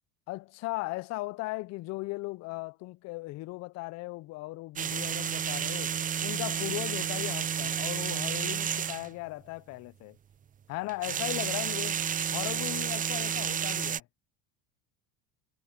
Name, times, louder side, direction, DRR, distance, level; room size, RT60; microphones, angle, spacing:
voice 1, 0.3-5.9 6.2-10.2 10.7-12.0 12.3-14.0, left 21 dB, 40° left, 0.4 m, -37 dB
sound 1, 4.8-9.1 10.9-14.0, right 8 dB, 20° right, 0.5 m, -31 dB
supercardioid pair, 120°, 43 cm